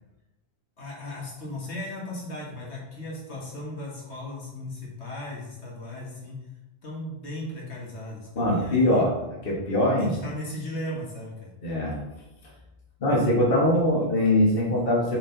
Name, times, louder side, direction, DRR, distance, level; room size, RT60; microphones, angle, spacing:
voice 1, 0.8-6.4 6.8-9.1 10.0-11.5, left 1 dB, 75° left, -4 dB, 1.8 m, -36 dB
voice 2, 8.3-9.1 9.4-10.1 11.6-11.9 13.0-15.2, left 1 dB, 55° left, -5 dB, 1.7 m, -22 dB
6.4 x 4.4 x 3.9 m, 0.97 s
omnidirectional pair, 1.2 m